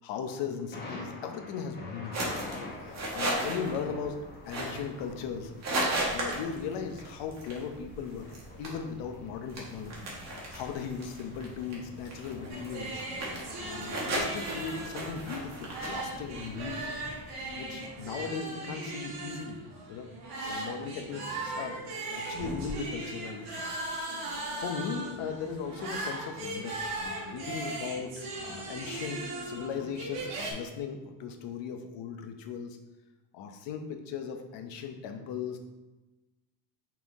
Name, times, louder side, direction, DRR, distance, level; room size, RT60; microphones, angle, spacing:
voice 1, 0.0-2.2 2.8-4.2 4.5-5.5 6.1-10.1 10.5-13.0 13.6-16.8 17.6-19.6 19.9-20.1 20.4-23.7 23.9-32.8 33.3-35.6, left 6 dB, 60° left, 5 dB, 1.0 m, -38 dB
Thunder, 0.7-18.2, left 2 dB, 20° left, 1.5 m, -48 dB
sound 1, 2.1-17.5, right 1 dB, 30° right, 1.7 m, -37 dB
sound 2, 12.5-30.5, right 2 dB, 55° right, 2.1 m, -38 dB
5.9 x 4.7 x 3.6 m, 1.1 s
cardioid pair, 140°, 49 cm